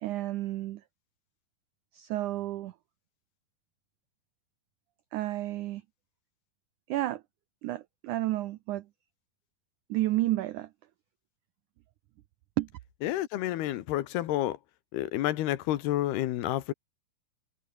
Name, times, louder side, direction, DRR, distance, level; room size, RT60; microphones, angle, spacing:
voice 1, 0.0-0.8 1.9-2.7 5.1-5.8 6.9-7.2 7.6-8.8 9.9-10.7 12.6-12.7, right 15 dB, 90° right, 1.7 m, -31 dB
voice 2, 13.0-14.6 14.9-16.7, left 14 dB, 85° left, 3.3 m, -29 dB
omnidirectional pair, 4.6 m